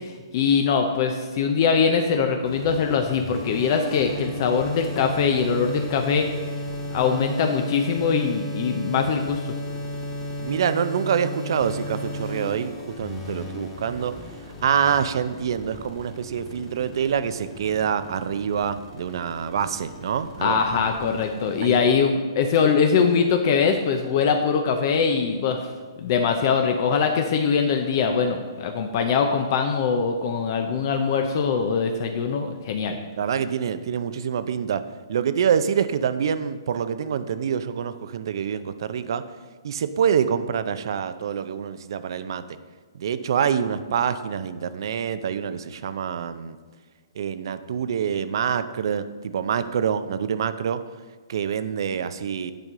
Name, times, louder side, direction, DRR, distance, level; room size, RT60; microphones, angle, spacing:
voice 1, 0.0-6.3 6.9-9.5 20.4-25.6 26.0-33.0, left 6 dB, 45° left, 5 dB, 0.6 m, -22 dB
sound 1, 2.5-21.9, left 1 dB, 20° left, 1.6 m, -34 dB
voice 2, 10.4-14.1 14.6-20.6 21.6-21.8 33.2-34.8 35.1-39.2 39.6-42.4 42.9-46.6 47.2-50.8 51.3-52.5, right 8 dB, 60° right, 13 dB, 0.5 m, -26 dB
9.1 x 5.2 x 3.7 m, 1.4 s
hypercardioid pair, 145°, 3 cm